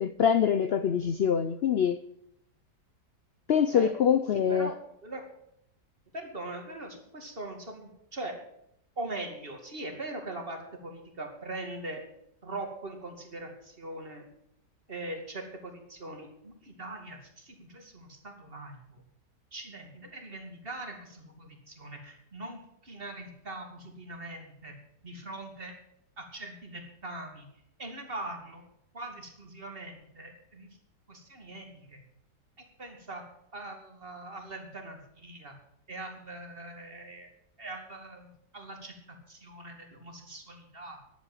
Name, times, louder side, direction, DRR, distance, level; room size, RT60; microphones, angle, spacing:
voice 1, 0.0-2.0 3.5-4.7, left 8 dB, 80° left, 0.5 m, -24 dB
voice 2, 4.3-4.7 5.0-5.2 6.1-8.4 9.0-12.0 12.4-14.2 14.9-19.0 19.5-24.7 25.0-25.7 26.2-27.5 27.8-28.7 28.9-30.7 31.1-32.0 32.8-33.2 33.5-35.5 35.9-37.3 37.6-38.9 39.3-41.0, right 2 dB, 35° right, 2.6 m, -41 dB
11.0 x 8.8 x 9.1 m
omnidirectional pair, 1.8 m